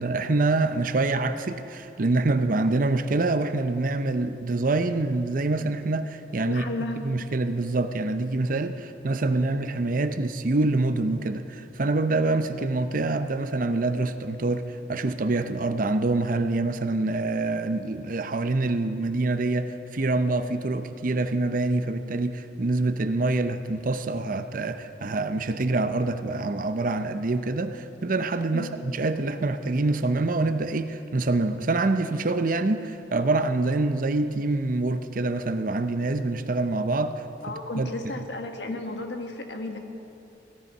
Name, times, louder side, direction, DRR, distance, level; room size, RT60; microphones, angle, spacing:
voice 1, 0.0-6.6 7.0-37.1 37.8-37.9, right 2 dB, 50° right, 10 dB, 0.6 m, -26 dB
voice 2, 6.5-7.0 28.5-28.7 37.4-39.8, left 2 dB, 80° left, 4 dB, 1.4 m, -33 dB
16.5 x 12.0 x 5.5 m, 2.8 s
head